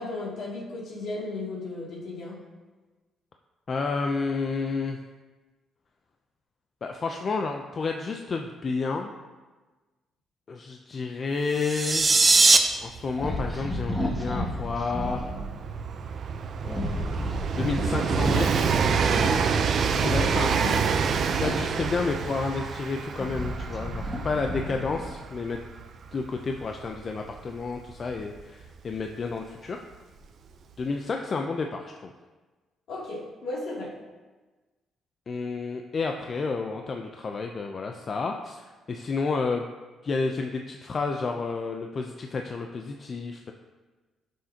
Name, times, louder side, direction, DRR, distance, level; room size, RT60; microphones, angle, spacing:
voice 1, 0.0-2.4 19.1-19.6 19.9-20.8 24.7-24.8 32.9-34.0, left 2 dB, 70° left, -5 dB, 2.7 m, -35 dB
voice 2, 3.7-5.0 6.8-9.1 10.5-12.1 12.8-15.3 16.6-17.2 17.5-18.7 20.0-20.5 21.4-25.7 26.1-29.8 30.8-32.1 35.3-39.7 40.0-43.5, left 4 dB, 45° left, 3 dB, 0.6 m, -30 dB
sound 1, 11.5-12.6, right 3 dB, 25° right, 0.8 m, -19 dB
Train, 12.0-12.1 12.3-28.9 29.9-30.0, right 6 dB, 60° right, 0.6 m, -28 dB
sound 2, 13.2-15.5 16.6-19.0 20.0-22.3 22.9-25.2, left 1 dB, ahead, 2.1 m, -33 dB
11.0 x 6.4 x 2.9 m, 1.3 s
cardioid pair, 90°, 0 cm